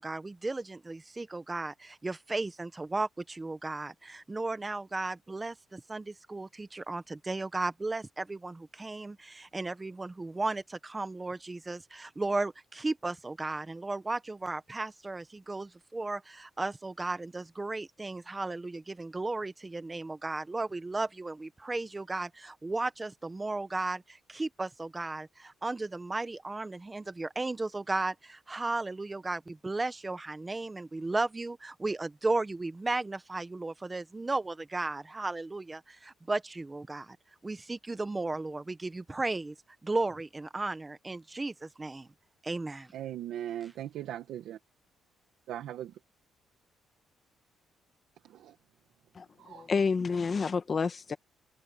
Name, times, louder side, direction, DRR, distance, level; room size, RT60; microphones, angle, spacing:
voice 1, 0.0-37.2 37.4-39.5 39.8-42.1 42.4-42.9, right 2 dB, 15° right, 1.3 m, -35 dB
voice 2, 42.9-44.6 45.5-45.9 48.2-48.6 49.4-49.7, right 11 dB, 75° right, 1.7 m, -39 dB
voice 3, 49.2-51.2, left 5 dB, 35° left, 1.6 m, -29 dB
cardioid pair, 125°, 0 cm